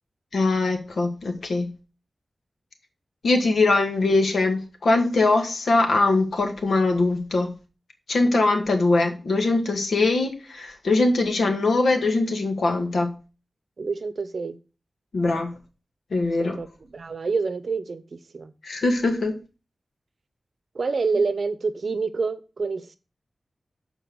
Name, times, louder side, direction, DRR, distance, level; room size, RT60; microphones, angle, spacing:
voice 1, 0.3-1.7 3.2-7.5 8.1-13.1 15.1-15.5 16.1-16.6 18.6-19.3, left 2 dB, 85° left, 4 dB, 1.4 m, -22 dB
voice 2, 13.8-14.6 16.4-16.7 16.9-18.5 20.7-22.9, right 4 dB, 65° right, 12 dB, 0.7 m, -27 dB
6.9 x 4.4 x 5.9 m, 0.33 s
wide cardioid pair, 105°, 0 cm